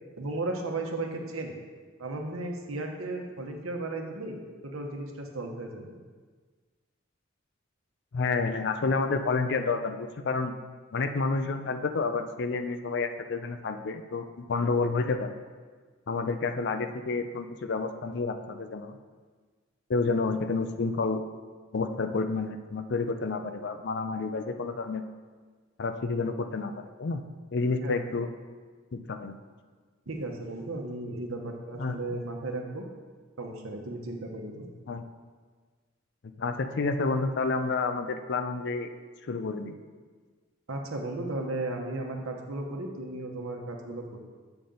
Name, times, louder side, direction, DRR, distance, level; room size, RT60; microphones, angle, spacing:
voice 1, 0.2-1.6 2.0-4.4 4.7-5.9 27.8-28.0 30.1-32.8 33.4-34.7 40.7-44.0, right 2 dB, 90° right, 2 dB, 1.0 m, -35 dB
voice 2, 8.1-10.5 10.9-15.3 16.1-19.0 19.9-21.2 21.7-25.0 25.8-27.2 27.5-28.3 28.9-29.4 31.8-32.2 34.9-35.0 36.4-38.9 39.3-39.8, left 4 dB, 55° left, 8 dB, 0.5 m, -29 dB
7.0 x 5.9 x 3.8 m, 1.5 s
head